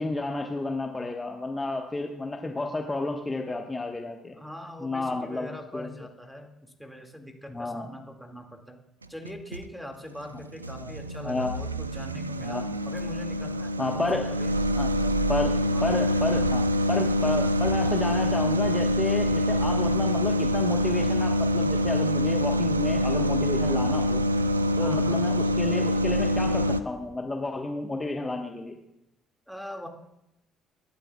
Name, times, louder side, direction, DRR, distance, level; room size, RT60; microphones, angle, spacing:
voice 1, 0.0-4.4 4.8-5.9 7.5-7.9 10.8-10.9 11.2-11.5 12.4-12.6 13.8-14.3 14.7-14.9 15.3-15.5 15.8-24.2 24.8-28.8, left 2 dB, 20° left, 3 dB, 1.3 m, -31 dB
voice 2, 4.3-8.8 9.1-12.6 12.8-15.3 15.7-15.9 24.8-25.2 29.5-29.9, left 1 dB, ahead, 4 dB, 2.2 m, -42 dB
sound 1, 9.0-9.7 10.2-26.8, left 1 dB, 85° right, 0.4 m, -25 dB
27.0 x 11.5 x 2.4 m, 0.87 s
figure-of-eight pair, 50°, 0 cm